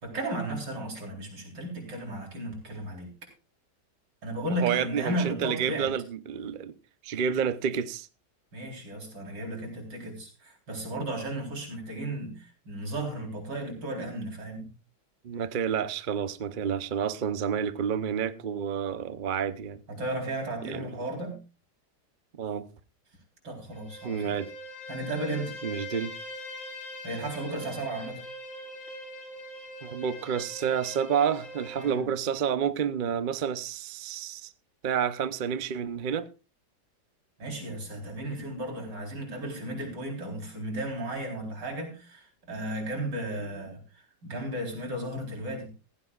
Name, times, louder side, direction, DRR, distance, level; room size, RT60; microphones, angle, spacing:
voice 1, 0.0-3.1 4.2-5.9 8.5-14.7 19.9-21.4 23.4-24.3 24.9-25.5 27.0-28.2 31.8-32.0 37.4-43.8 44.2-45.7, right 1 dB, 85° right, 4.7 m, -34 dB
voice 2, 4.5-6.7 7.0-8.1 15.2-19.8 20.7-20.9 22.4-22.7 24.0-24.5 25.6-26.1 29.8-34.5 34.8-36.3 43.4-43.5, right 8 dB, 50° right, 0.6 m, -29 dB
Bowed string instrument, 23.7-32.0, equal, 80° left, 3.8 m, -42 dB
15.5 x 15.5 x 2.4 m
omnidirectional pair, 1.9 m